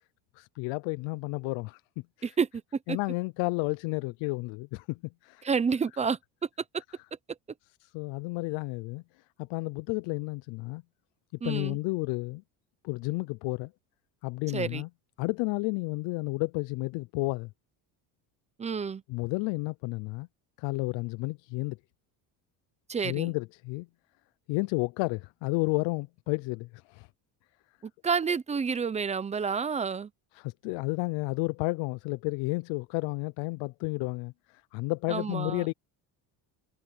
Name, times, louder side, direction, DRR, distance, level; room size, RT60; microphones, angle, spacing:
voice 1, 0.4-1.8 2.2-2.3 2.9-5.5 7.9-9.0 9.4-10.8 11.4-12.4 12.8-13.7 14.2-14.9 15.2-17.5 19.1-20.3 20.6-21.8 23.0-23.9 24.5-27.1 30.4-35.7, left 25 dB, 85° left, 0.6 m, -31 dB
voice 2, 5.4-6.5 11.4-11.8 14.5-14.8 18.6-19.0 22.9-23.3 27.8-30.1 35.1-35.7, right 5 dB, 15° right, 0.7 m, -29 dB
cardioid pair, 150°, 43 cm